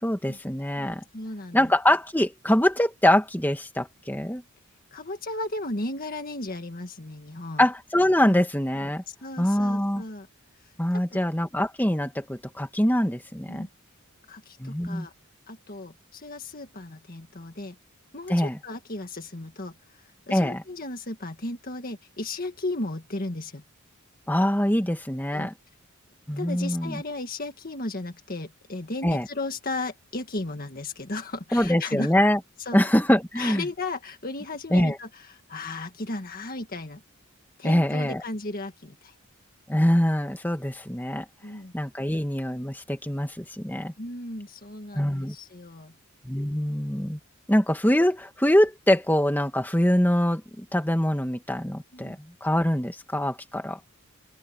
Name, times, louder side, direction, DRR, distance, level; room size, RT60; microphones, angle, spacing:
voice 1, 0.0-1.0 1.5-4.4 7.6-9.0 9.4-10.0 10.8-13.7 14.6-15.1 18.3-18.6 20.3-20.6 24.3-25.5 26.3-27.0 29.0-29.3 31.5-32.4 32.7-33.7 34.7-35.0 37.6-38.2 39.7-41.3 41.7-43.9 44.9-45.4 46.2-47.2 47.5-53.8, left 1 dB, 10° left, 2.0 m, -24 dB
voice 2, 1.1-1.7 4.9-7.7 8.2-8.4 9.1-10.3 10.6-10.7 11.1-11.2 13.5-13.7 14.3-15.1 15.5-17.8 18.1-23.6 25.3-25.5 26.4-32.1 32.6-32.8 33.4-37.0 37.6-39.2 41.4-41.7 44.0-45.9 51.9-52.2, left 2 dB, 40° left, 1.8 m, -35 dB
open air
head